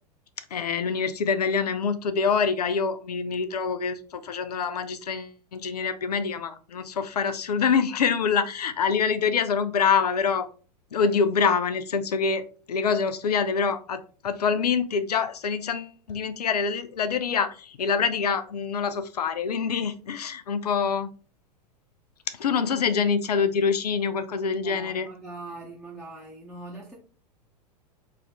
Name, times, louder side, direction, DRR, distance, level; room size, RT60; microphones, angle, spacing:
voice 1, 0.5-10.5 10.9-12.4 12.7-21.1 22.4-25.1, left 6 dB, 70° left, 11 dB, 0.5 m, -25 dB
voice 2, 24.6-27.0, right 2 dB, ahead, -4 dB, 0.8 m, -41 dB
4.5 x 2.5 x 3.4 m, 0.38 s
figure-of-eight pair, 95°, 21 cm